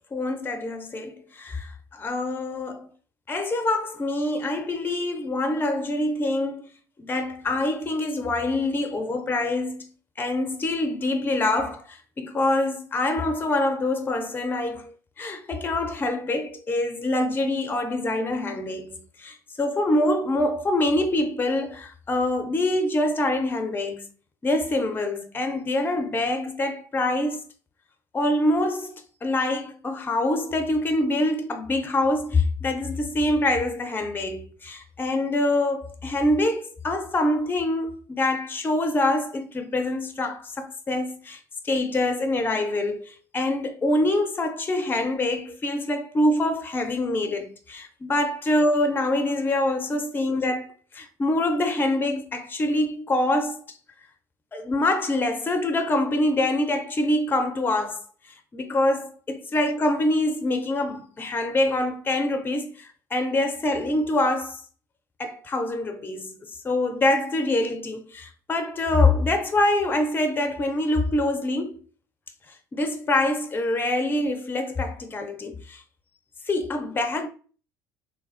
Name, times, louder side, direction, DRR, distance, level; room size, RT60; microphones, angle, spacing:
voice 1, 0.1-2.9 3.3-6.7 7.0-9.9 10.2-24.1 24.4-27.4 28.1-29.0 29.2-41.4 41.6-53.6 54.5-58.0 58.5-64.6 65.2-66.3 66.6-71.8 72.7-75.8 76.5-77.3, left 1 dB, 20° left, 0.4 m, -25 dB
3.3 x 2.3 x 2.4 m
figure-of-eight pair, 60°, 11 cm